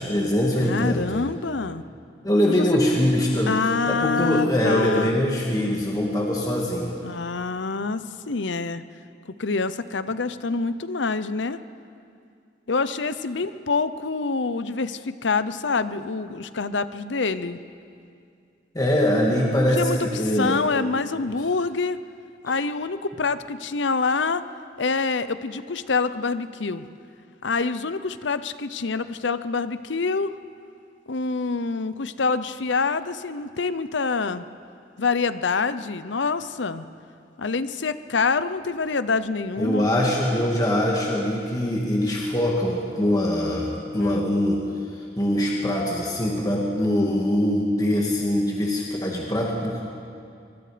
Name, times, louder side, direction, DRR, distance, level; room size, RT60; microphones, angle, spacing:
voice 1, 0.0-1.2 2.2-3.6 3.9-7.0 18.7-20.6 39.6-44.6 45.2-49.9, left 1 dB, 20° left, -2 dB, 2.1 m, -23 dB
voice 2, 0.6-1.8 2.5-2.7 3.5-5.2 7.0-8.8 9.4-11.6 12.7-17.6 19.8-22.0 22.4-24.4 24.8-26.9 27.4-30.3 31.1-34.5 35.0-36.9 37.4-39.9 44.0-44.3, left 4 dB, 80° left, 13 dB, 0.8 m, -26 dB
24.5 x 23.0 x 5.1 m, 2.4 s
head